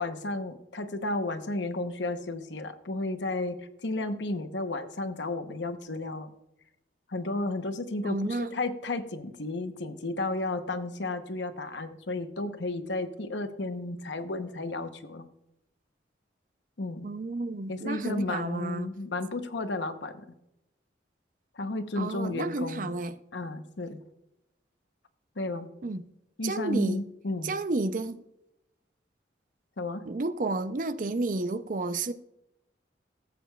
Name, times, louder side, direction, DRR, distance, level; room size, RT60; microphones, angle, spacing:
voice 1, 0.0-6.3 7.1-15.3 16.8-17.1 17.7-20.3 21.6-23.0 23.3-24.0 25.4-25.7 26.4-27.5 29.8-30.0, left 2 dB, 75° left, 0.9 m, -33 dB
voice 2, 8.0-8.6 17.0-18.9 22.0-23.1 25.8-26.0 26.4-27.0 27.4-28.2 30.1-32.1, right 2 dB, 45° right, 0.5 m, -31 dB
18.0 x 8.3 x 2.3 m
head